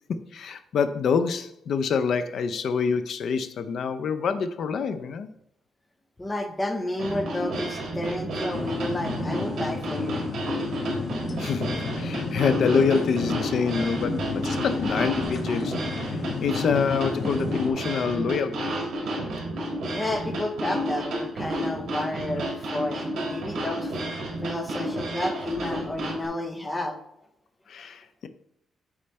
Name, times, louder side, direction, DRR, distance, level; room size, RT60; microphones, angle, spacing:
voice 1, 0.1-5.3 11.4-18.9 27.7-28.3, left 5 dB, 60° left, 0.5 m, -26 dB
voice 2, 6.2-10.2 19.9-24.0 24.4-27.0, left 1 dB, 15° left, 0.9 m, -31 dB
sound 1, 7.0-26.3, right 1 dB, 65° right, 2.0 m, -31 dB
sound 2, 8.5-17.7, left 4 dB, 40° left, 1.1 m, -32 dB
8.7 x 3.3 x 4.3 m
cardioid pair, 120°, 0 cm